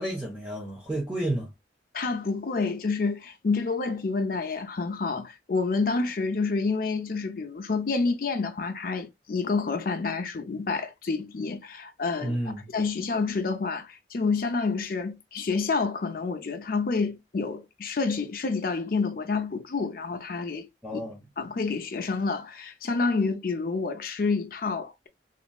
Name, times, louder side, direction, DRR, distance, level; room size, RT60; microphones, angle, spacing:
voice 1, 0.0-1.5 12.2-12.7 20.8-21.2, right 1 dB, 5° right, 0.7 m, -31 dB
voice 2, 1.9-12.4 12.7-21.0 21.4-25.1, left 4 dB, 50° left, 0.5 m, -28 dB
3.0 x 2.5 x 2.2 m
head